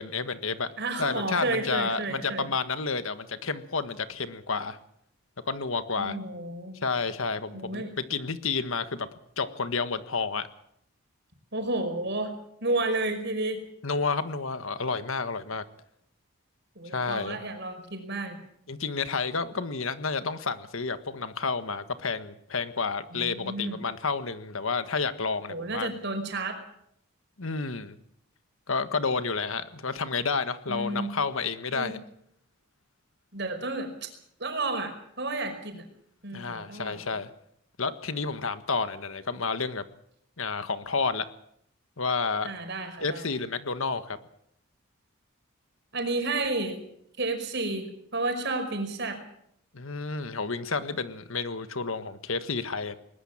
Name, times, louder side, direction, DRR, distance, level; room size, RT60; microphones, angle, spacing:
voice 1, 0.0-0.7 1.0-4.8 5.5-6.2 6.8-9.1 9.4-10.5 13.8-15.6 16.8-17.4 18.7-25.9 27.4-28.0 28.7-32.0 36.3-37.3 37.8-39.8 40.4-41.3 42.0-42.5 43.0-44.2 49.7-53.0, left 4 dB, 70° left, 11 dB, 1.5 m, -30 dB
voice 2, 0.8-2.5 6.0-6.7 7.5-7.9 11.5-12.3 12.6-13.6 16.7-18.4 23.1-23.8 25.5-26.6 30.7-31.1 31.7-31.9 33.3-34.1 34.4-34.9 35.2-35.8 36.2-37.1 42.4-43.3 45.9-46.8 47.2-47.9 48.1-49.2, right 2 dB, 50° right, 5 dB, 5.2 m, -31 dB
21.0 x 20.5 x 7.4 m, 0.72 s
head